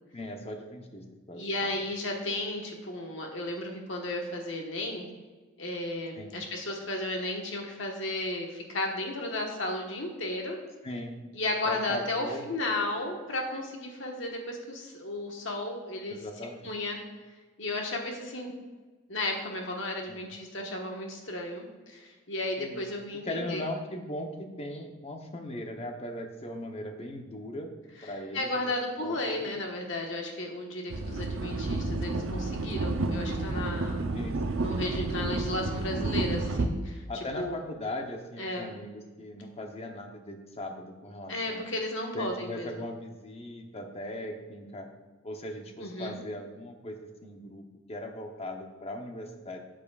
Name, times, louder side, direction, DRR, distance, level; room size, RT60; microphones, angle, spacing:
voice 1, 0.1-1.7 6.1-6.5 10.8-11.3 11.6-12.6 16.1-16.7 20.1-20.3 22.6-22.8 23.2-27.7 28.0-29.6 31.0-31.2 34.1-35.1 37.1-41.6 42.1-44.9 45.2-47.6 47.9-49.6, left 1 dB, 30° left, 4 dB, 0.9 m, -39 dB
voice 2, 1.3-5.1 5.6-10.6 11.3-16.2 16.6-17.0 17.6-18.5 19.1-23.6 28.3-34.0 34.6-37.0 37.4-37.6 38.4-38.7 41.3-42.7 45.8-46.2, left 2 dB, 65° left, 1 dB, 1.4 m, -34 dB
sound 1, 30.9-36.7, right 2 dB, 85° right, 0.7 m, -30 dB
12.0 x 7.5 x 2.4 m, 1.3 s
head